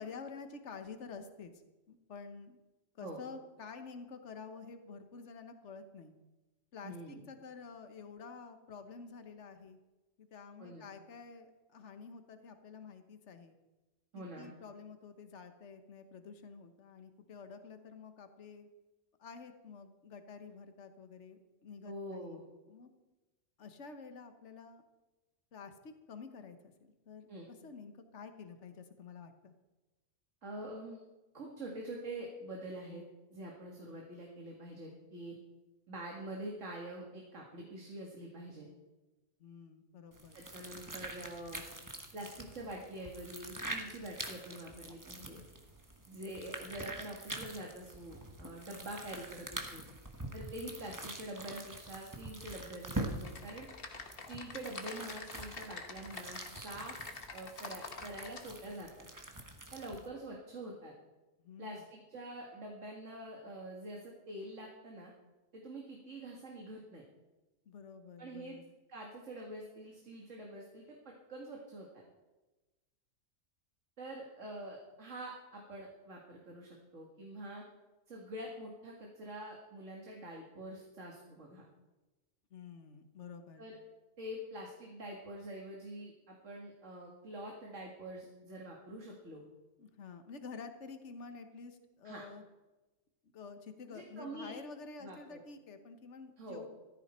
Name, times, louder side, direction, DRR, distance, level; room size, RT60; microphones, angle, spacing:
voice 1, 0.0-2.6 2.9-6.1 6.7-9.8 10.2-13.5 14.1-18.7 19.2-22.9 23.6-24.8 25.5-29.5 39.4-40.4 59.9-60.1 60.7-60.8 61.4-61.8 67.6-68.7 82.5-83.6 89.8-92.4 93.3-96.7, left 5 dB, 60° left, 8 dB, 1.5 m, -50 dB
voice 2, 6.8-7.2 10.6-10.9 14.1-14.5 21.8-22.4 27.3-27.5 30.4-31.0 31.3-33.0 33.3-35.4 35.9-38.7 40.3-41.6 42.1-45.4 46.1-49.8 50.3-53.7 54.3-59.1 59.7-60.9 61.6-65.1 65.5-67.0 68.2-68.6 68.9-72.0 74.0-77.6 78.1-81.6 83.6-83.8 84.2-89.4 92.0-92.2 93.9-94.6 95.0-95.4 96.4-96.7, right 1 dB, 70° right, -1 dB, 2.2 m, -46 dB
sound 1, 40.1-60.1, right 1 dB, 15° right, 1.3 m, -45 dB
Typing, 53.2-58.4, left 4 dB, 45° left, 1.4 m, -46 dB
15.5 x 13.5 x 4.4 m, 1.1 s
omnidirectional pair, 1.3 m